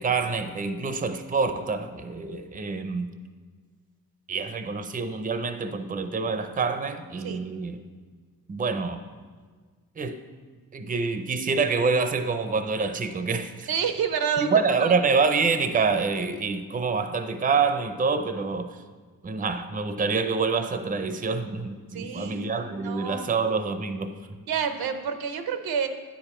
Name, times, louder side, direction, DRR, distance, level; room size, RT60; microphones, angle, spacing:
voice 1, 0.0-3.1 4.3-7.8 8.5-9.0 10.0-10.2 10.7-13.7 14.4-18.8 19.2-24.1, right 4 dB, 25° right, 9 dB, 0.5 m, -26 dB
voice 2, 13.7-14.9 21.9-23.4 24.5-25.9, right 7 dB, 90° right, 8 dB, 0.7 m, -29 dB
9.3 x 5.0 x 4.2 m, 1.5 s
cardioid pair, 80°, 36 cm